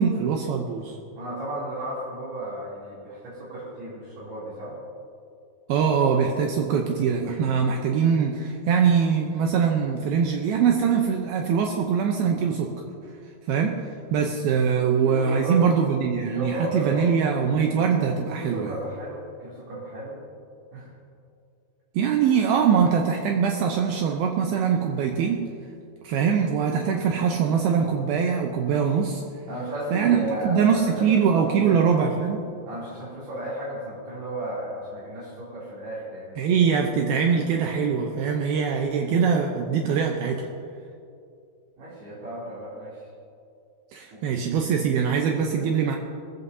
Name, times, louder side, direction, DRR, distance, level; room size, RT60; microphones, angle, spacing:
voice 1, 0.0-1.0 5.7-12.7 13.5-13.8 14.1-18.7 21.9-25.4 26.0-29.2 29.9-32.4 36.4-40.5 43.9-46.0, right 6 dB, 85° right, 2 dB, 2.2 m, -22 dB
voice 2, 1.2-4.8 15.0-15.6 16.2-17.1 18.3-20.2 20.7-20.9 29.5-31.2 31.5-31.8 32.7-36.4 41.8-42.9 44.1-44.2, right 1 dB, 60° right, -9 dB, 4.9 m, -34 dB
20.0 x 15.5 x 2.8 m, 2.4 s
omnidirectional pair, 5.4 m